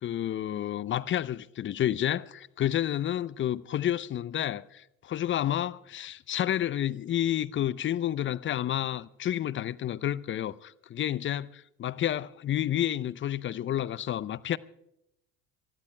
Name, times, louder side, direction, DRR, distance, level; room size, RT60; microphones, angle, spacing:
voice 1, 0.0-14.6, left 11 dB, 30° left, 0.6 m, -30 dB
27.5 x 19.5 x 2.2 m
hypercardioid pair, 65°, 41 cm